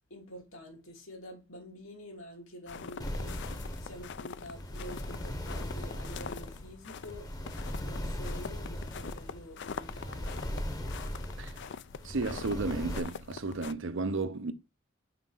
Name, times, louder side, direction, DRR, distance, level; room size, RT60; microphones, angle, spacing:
voice 1, 0.1-7.3 7.8-10.4, equal, 85° left, 2.8 m, -48 dB
sound 1, 2.7-13.7, left 6 dB, 60° left, 0.5 m, -44 dB
sound 2, 3.0-13.0, equal, 20° left, 0.9 m, -39 dB
voice 2, 12.0-14.5, right 3 dB, 65° right, 0.7 m, -33 dB
5.8 x 4.9 x 5.6 m
head